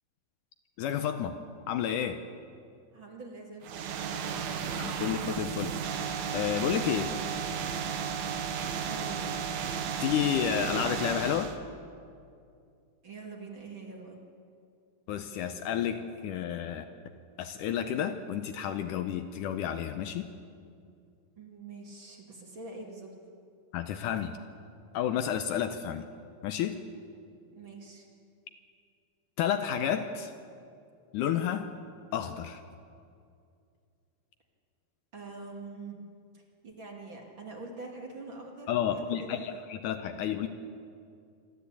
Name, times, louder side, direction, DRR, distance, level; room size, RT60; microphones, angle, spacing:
voice 1, 0.8-1.4 1.7-2.2 4.8-5.8 6.3-7.1 10.0-11.5 15.1-16.9 17.4-20.3 23.7-24.4 24.9-26.1 26.4-26.8 29.4-30.3 31.1-31.7 32.1-32.6 38.7-40.5, left 9 dB, 75° left, 8 dB, 2.1 m, -31 dB
voice 2, 2.9-4.6 8.7-9.5 13.0-14.2 21.4-23.1 27.5-28.1 35.1-36.0 36.3-39.6, right 3 dB, 40° right, 0 dB, 2.5 m, -45 dB
sound 1, 3.6-11.6, right 7 dB, 65° right, 2.2 m, -34 dB
26.0 x 13.0 x 8.5 m, 2.4 s
omnidirectional pair, 4.1 m